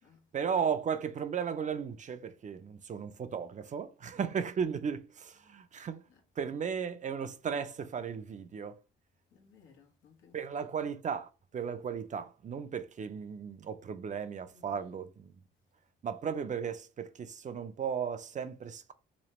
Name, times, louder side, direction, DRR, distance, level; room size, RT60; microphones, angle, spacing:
voice 1, 0.3-6.0 6.4-8.8 10.3-15.3 16.0-18.9, right 7 dB, 40° right, 0.5 m, -35 dB
voice 2, 9.3-10.4 10.7-10.8 14.5-15.0, left 6 dB, 90° left, 1.2 m, -61 dB
3.3 x 3.1 x 2.9 m
cardioid pair, 90°, 20 cm